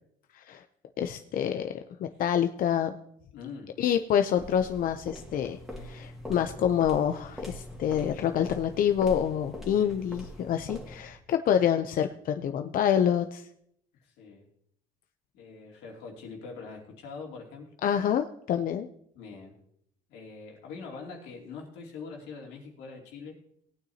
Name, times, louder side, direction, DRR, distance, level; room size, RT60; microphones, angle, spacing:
voice 1, 1.0-3.0 3.8-5.6 5.8-13.5 17.8-18.9, left 9 dB, 55° left, 7 dB, 0.6 m, -27 dB
voice 2, 3.3-3.7 9.8-9.9 14.0-14.5 15.3-17.7 19.1-19.6 20.1-23.4, left 4 dB, 90° left, 0 dB, 2.7 m, -43 dB
sound 1, 4.4-11.2, left 1 dB, ahead, 2.1 m, -43 dB
18.0 x 9.1 x 2.8 m, 0.72 s
cardioid pair, 110°, 17 cm